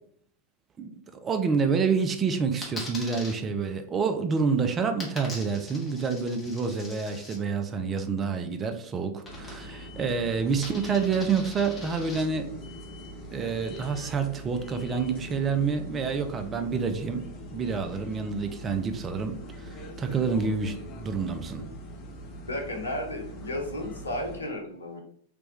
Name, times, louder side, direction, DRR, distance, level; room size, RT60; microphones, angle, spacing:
voice 1, 0.8-12.5 13.3-21.6, right 5 dB, 25° right, 7 dB, 0.4 m, -28 dB
Coin (dropping), 2.6-3.3 5.0-7.4 9.2-9.9 10.2-12.2, left 2 dB, 15° left, 1.3 m, -42 dB
sound 1, 9.3-24.4, equal, 40° left, 0.8 m, -42 dB
voice 2, 22.4-25.0, left 1 dB, 75° left, 2 dB, 0.8 m, -33 dB
3.4 x 3.0 x 3.1 m, 0.64 s
figure-of-eight pair, 90°, 0 cm